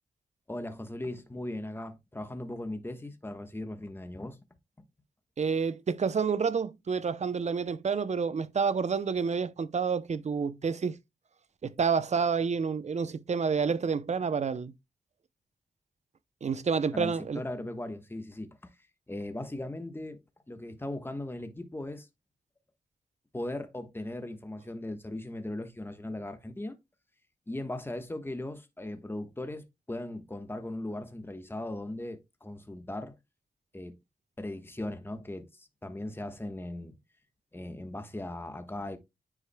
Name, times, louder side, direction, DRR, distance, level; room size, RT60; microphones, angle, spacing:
voice 1, 0.5-4.4 16.9-18.7 19.1-20.2 20.5-22.1 23.3-26.8 27.5-33.2 33.7-34.0 34.4-36.9 37.5-39.0, left 1 dB, 15° left, 1.2 m, -38 dB
voice 2, 5.4-11.0 11.6-14.7 16.4-17.4, right 5 dB, 50° right, 0.6 m, -29 dB
9.7 x 4.8 x 2.2 m
cardioid pair, 50°, 15 cm